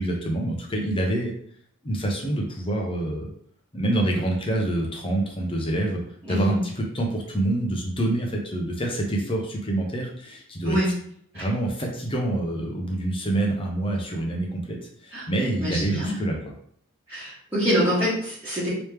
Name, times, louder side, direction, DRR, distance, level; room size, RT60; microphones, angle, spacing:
voice 1, 0.0-1.3 1.8-3.3 3.7-6.0 6.3-10.8 11.3-14.8 15.0-16.5, right 1 dB, 25° left, 0 dB, 0.7 m, -26 dB
voice 2, 6.3-6.6 10.6-10.9 11.3-11.4 15.1-15.2 15.6-16.3 17.1-18.7, equal, 15° right, -13 dB, 1.4 m, -25 dB
3.2 x 3.0 x 3.3 m, 0.63 s
head